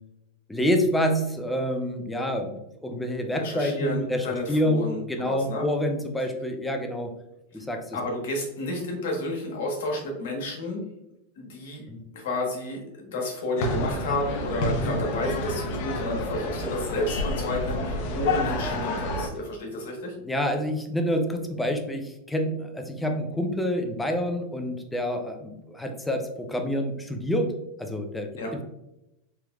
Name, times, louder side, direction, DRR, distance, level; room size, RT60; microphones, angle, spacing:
voice 1, 0.5-4.8 5.1-7.1 7.5-8.0 11.9-12.0 14.8-15.0 18.6-18.8 20.2-28.3, equal, 5° left, 4 dB, 0.4 m, -27 dB
voice 2, 3.4-5.7 7.5-7.6 7.9-10.9 11.4-11.8 12.1-20.1 28.4-28.6, left 1 dB, 75° left, 0 dB, 1.2 m, -31 dB
sound 1, 13.6-19.3, left 2 dB, 60° left, 0.6 m, -29 dB
3.3 x 3.0 x 2.3 m, 0.87 s
supercardioid pair, 120°, 0 cm